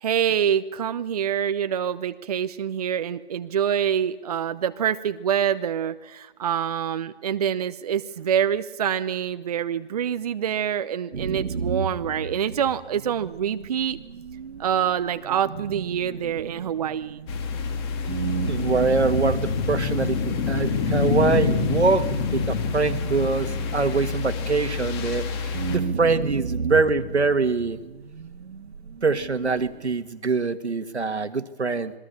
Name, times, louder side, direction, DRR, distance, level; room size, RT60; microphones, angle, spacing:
voice 1, 0.0-14.0 14.6-17.3, right 9 dB, 35° right, 11 dB, 0.8 m, -26 dB
sound 1, 11.1-17.7 18.1-25.1 25.5-29.9, right 5 dB, 70° right, 1.8 m, -34 dB
sound 2, 17.3-25.8, left 5 dB, 25° left, 2.3 m, -27 dB
voice 2, 18.4-27.8 29.0-31.9, right 4 dB, 90° right, 9 dB, 2.1 m, -24 dB
27.5 x 21.5 x 7.0 m, 1.1 s
figure-of-eight pair, 150°, 32 cm